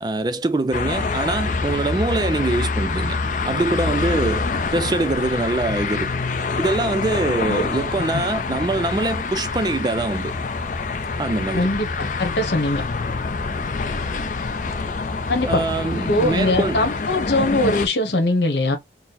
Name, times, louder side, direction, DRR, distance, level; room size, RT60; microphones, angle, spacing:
voice 1, 0.0-3.2 3.4-6.1 6.6-10.3 11.2-11.7 15.5-16.8, right 2 dB, 25° right, 0.3 m, -23 dB
sound 1, 0.7-17.9, left 4 dB, 45° left, 0.5 m, -26 dB
voice 2, 11.5-12.8 15.3-15.6 16.1-18.8, left 1 dB, 80° left, 1.1 m, -21 dB
4.1 x 2.1 x 4.0 m
head